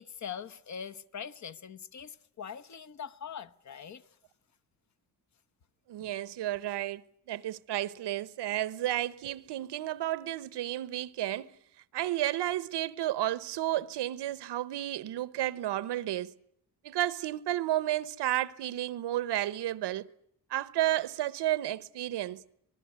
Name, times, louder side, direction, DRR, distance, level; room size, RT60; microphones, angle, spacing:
voice 1, 0.0-4.1 6.0-6.1, left 7 dB, 45° left, 1.0 m, -42 dB
voice 2, 5.9-7.0 7.3-11.5 11.9-16.3 16.8-20.1 20.5-22.4, right 13 dB, 85° right, 1.1 m, -32 dB
25.5 x 20.5 x 9.5 m
cardioid pair, 160°, 40 cm